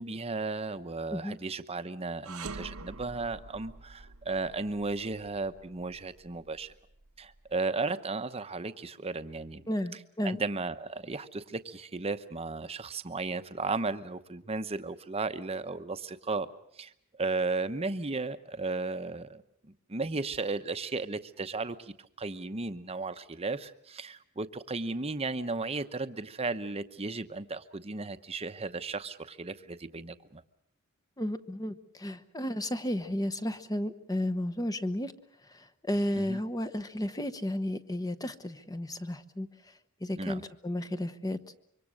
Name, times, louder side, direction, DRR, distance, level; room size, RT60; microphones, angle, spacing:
voice 1, 0.0-6.7 7.2-9.7 10.2-16.5 16.8-16.9 17.2-30.4 36.1-36.4 40.2-40.4, right 3 dB, 30° right, 10 dB, 0.9 m, -35 dB
sound 1, 2.2-7.5, right 3 dB, 90° right, 1.1 m, -46 dB
voice 2, 9.7-10.4 31.2-35.1 35.9-39.5 40.0-41.4, left 1 dB, 15° left, 11 dB, 1.0 m, -33 dB
25.5 x 24.0 x 6.4 m, 0.72 s
head